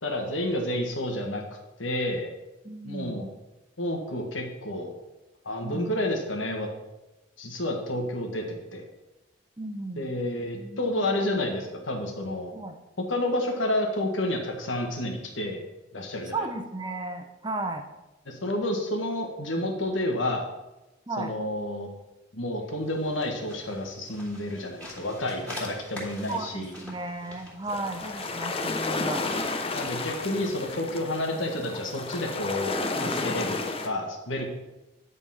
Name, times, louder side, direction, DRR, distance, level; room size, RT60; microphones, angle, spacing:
voice 1, 0.0-1.4 1.8-2.3 2.8-3.2 3.8-4.9 5.4-6.7 7.4-8.8 10.0-12.5 13.1-15.6 15.9-16.5 18.2-20.5 21.2-21.9 22.3-26.7 29.7-34.5, left 1 dB, 80° left, 2 dB, 1.6 m, -30 dB
voice 2, 2.6-3.3 5.6-5.9 9.6-10.2 10.5-11.1 12.5-12.8 16.3-17.9 21.1-21.3 26.3-29.2, right 2 dB, 20° right, 6 dB, 0.8 m, -35 dB
sound 1, 22.7-31.0, left 1 dB, 5° left, 2.5 m, -46 dB
sound 2, 27.7-33.9, left 3 dB, 30° left, 0.7 m, -32 dB
10.0 x 4.1 x 5.7 m, 1.0 s
head